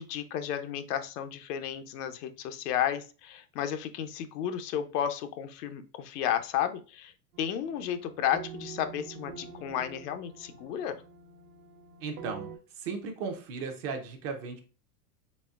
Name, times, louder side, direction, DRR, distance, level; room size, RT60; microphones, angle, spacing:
voice 1, 0.0-11.0, left 10 dB, 70° left, 10 dB, 0.7 m, -33 dB
sound 1, 7.3-12.6, right 6 dB, 65° right, 1.1 m, -46 dB
voice 2, 12.0-14.6, right 5 dB, 30° right, 4 dB, 0.5 m, -36 dB
4.1 x 3.4 x 2.3 m, 0.34 s
supercardioid pair, 140°, 48 cm